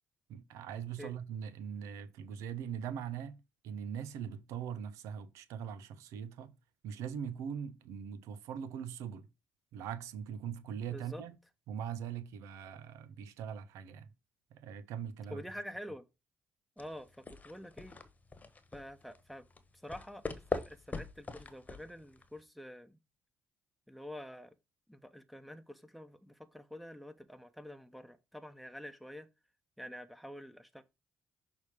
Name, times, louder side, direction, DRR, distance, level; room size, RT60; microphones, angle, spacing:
voice 1, 0.3-3.4 3.6-6.5 6.8-9.3 9.7-11.4 11.7-14.1 14.5-15.4, right 8 dB, 75° right, 0.8 m, -41 dB
voice 2, 10.9-11.2 15.3-16.0 16.8-18.0 18.7-19.4 19.8-23.0 23.9-24.5 24.9-29.3 29.8-30.8, equal, ahead, 1.0 m, -47 dB
sound 1, 16.8-22.4, left 3 dB, 30° left, 1.2 m, -42 dB
6.3 x 3.6 x 5.0 m
hypercardioid pair, 50°, 5 cm